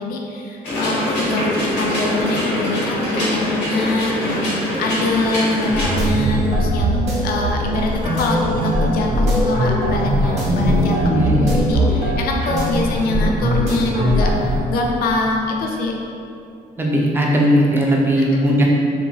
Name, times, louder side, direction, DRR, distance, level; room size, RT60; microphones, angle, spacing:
voice 1, 0.0-15.9 18.2-18.6, left 2 dB, 65° left, 1 dB, 0.4 m, -24 dB
sound 1, 0.6-6.0, left 1 dB, 85° left, 1.1 m, -23 dB
sound 2, 5.6-14.6, equal, 40° right, 0.8 m, -20 dB
voice 2, 10.5-11.6 16.8-18.7, equal, 15° right, -3 dB, 0.4 m, -18 dB
2.8 x 2.5 x 2.3 m, 2.6 s
cardioid pair, 110°, 17 cm